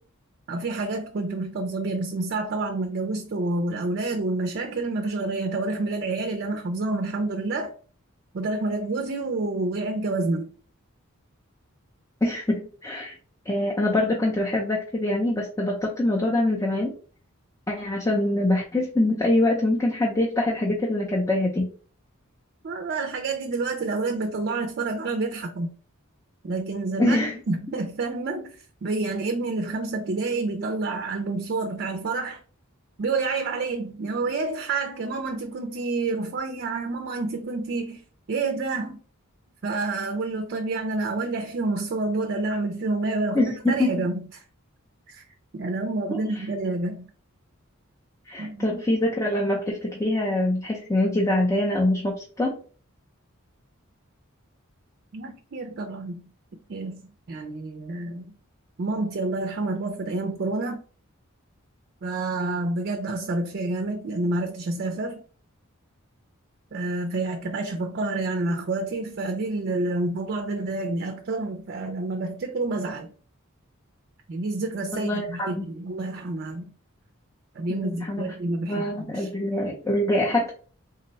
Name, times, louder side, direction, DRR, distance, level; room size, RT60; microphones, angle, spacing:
voice 1, 0.5-7.7 8.3-10.5 22.6-25.7 26.4-27.2 27.5-32.4 33.0-38.0 38.3-39.0 39.6-44.3 45.1-45.2 45.5-47.0 48.4-49.0 55.1-56.3 56.7-58.3 58.8-60.8 62.0-65.2 66.7-73.1 74.3-76.7 77.5-79.3, right 3 dB, 50° right, 0.4 m, -28 dB
voice 2, 12.2-13.2 13.5-16.9 17.7-21.7 27.0-27.3 43.3-43.9 46.1-46.4 48.3-52.5 74.9-75.6 77.7-78.3 78.7-80.5, left 1 dB, 15° left, 0.5 m, -24 dB
3.7 x 2.2 x 3.9 m
head